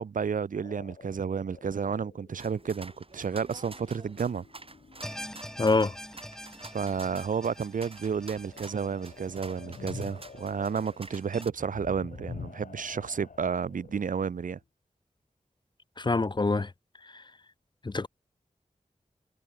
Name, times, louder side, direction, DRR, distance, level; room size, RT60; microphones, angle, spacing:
voice 1, 0.0-4.4 6.7-14.6, right 6 dB, 80° right, 0.6 m, -31 dB
sound 1, 0.6-5.7 8.3-14.6, left 5 dB, 80° left, 1.4 m, -48 dB
sound 2, 2.4-11.5, right 3 dB, 45° right, 2.5 m, -49 dB
sound 3, 5.0-11.4, equal, 5° left, 0.9 m, -45 dB
voice 2, 5.6-5.9 16.0-16.7 17.1-17.2 17.8-18.1, left 3 dB, 35° left, 0.6 m, -25 dB
cardioid pair, 45°, 14 cm